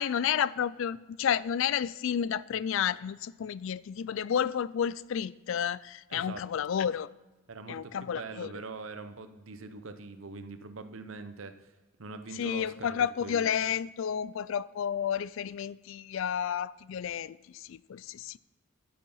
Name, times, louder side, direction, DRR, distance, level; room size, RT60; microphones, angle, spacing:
voice 1, 0.0-7.1 7.7-8.5 12.3-18.4, left 8 dB, 70° left, 0.3 m, -31 dB
voice 2, 6.1-6.5 7.5-11.6 12.0-13.5, right 3 dB, 70° right, 0.8 m, -43 dB
10.5 x 8.7 x 5.6 m
head